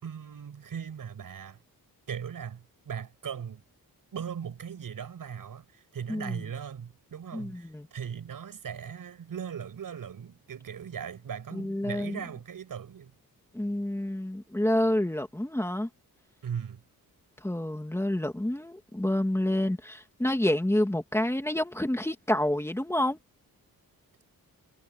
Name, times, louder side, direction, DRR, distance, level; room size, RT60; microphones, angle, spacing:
voice 1, 0.0-1.6 2.1-3.6 4.1-13.1 16.4-16.8, right 7 dB, 65° right, 6.9 m, -39 dB
voice 2, 6.1-6.4 7.3-7.9 11.5-12.2 13.5-15.9 17.4-23.2, left 1 dB, 5° left, 2.5 m, -28 dB
wide cardioid pair, 150°, 36 cm